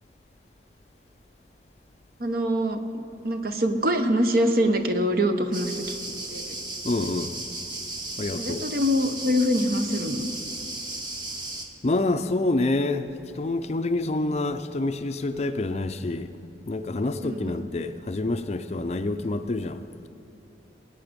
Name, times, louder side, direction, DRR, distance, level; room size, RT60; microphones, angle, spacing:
voice 1, 2.2-2.8 3.2-6.0 6.3-6.6 8.4-10.3 17.2-17.6, equal, 50° right, 7 dB, 0.9 m, -24 dB
sound 1, 5.5-11.6, right 2 dB, 25° right, 1.1 m, -35 dB
voice 2, 6.8-7.4 8.2-8.6 11.8-16.3 16.7-20.1, left 2 dB, 35° left, 9 dB, 0.4 m, -27 dB
21.0 x 8.9 x 5.2 m, 2.9 s
head